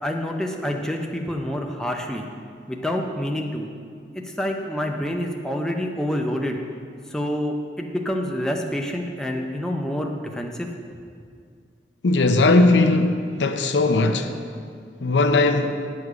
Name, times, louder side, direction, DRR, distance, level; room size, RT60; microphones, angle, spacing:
voice 1, 0.0-2.2 2.7-3.7 4.1-6.6 7.1-10.7, equal, 5° left, 0.6 m, -27 dB
voice 2, 12.0-14.3 15.0-15.8, left 2 dB, 85° left, 0.6 m, -18 dB
9.6 x 6.5 x 4.8 m
head